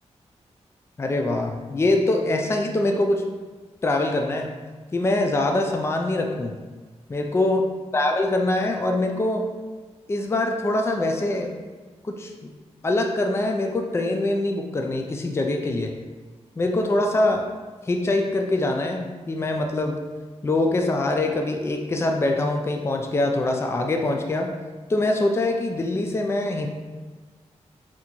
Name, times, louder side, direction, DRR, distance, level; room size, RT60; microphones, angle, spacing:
voice 1, 1.0-3.2 3.8-4.5 4.9-6.6 7.1-9.5 10.1-11.6 12.0-12.5 12.8-16.0 16.6-17.5 17.9-20.0 20.4-24.5 24.9-26.7, left 2 dB, 20° left, 2 dB, 0.3 m, -24 dB
4.1 x 2.8 x 3.0 m, 1.3 s
wide cardioid pair, 110°, 12 cm